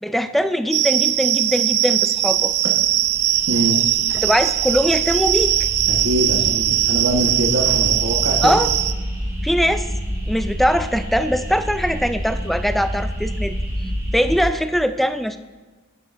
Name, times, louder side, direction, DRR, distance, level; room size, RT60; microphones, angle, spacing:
voice 1, 0.0-2.5 4.1-5.5 8.4-8.7 9.4-9.9 10.3-13.6 14.1-15.4, equal, ahead, 9 dB, 0.3 m, -21 dB
sound 1, 0.7-8.9, right 13 dB, 85° right, 0.5 m, -20 dB
sound 2, 2.4-14.4, equal, 15° right, 1.8 m, -29 dB
voice 2, 3.5-3.8 5.9-8.5, right 1 dB, 65° right, -2 dB, 1.3 m, -23 dB
16.0 x 6.5 x 2.6 m, 1.4 s
head